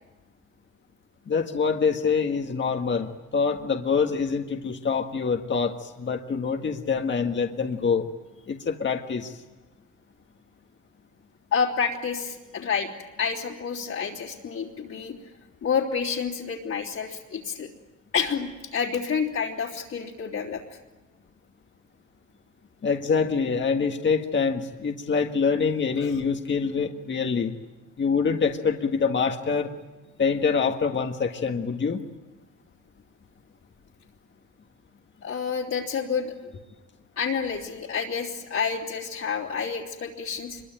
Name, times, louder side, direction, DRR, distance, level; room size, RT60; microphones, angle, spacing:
voice 1, 1.3-8.1 8.5-9.4 22.8-27.5 28.0-29.7 30.2-32.0, left 5 dB, 40° left, 4 dB, 1.8 m, -25 dB
voice 2, 11.5-12.9 13.2-15.1 15.6-17.7 18.1-20.8 26.0-26.2 35.2-36.3 37.2-40.6, left 6 dB, 60° left, -4 dB, 3.5 m, -29 dB
25.5 x 23.0 x 9.1 m, 1.2 s
cardioid pair, 90°, 30 cm